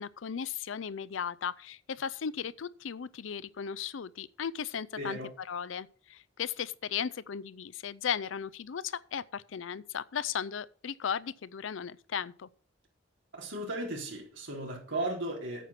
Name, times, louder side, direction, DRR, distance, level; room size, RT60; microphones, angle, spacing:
voice 1, 0.0-5.2 5.5-12.5, left 7 dB, 75° left, 0.5 m, -36 dB
voice 2, 5.0-5.3 13.3-15.7, right 1 dB, 70° right, 3.9 m, -36 dB
9.2 x 7.5 x 5.8 m
head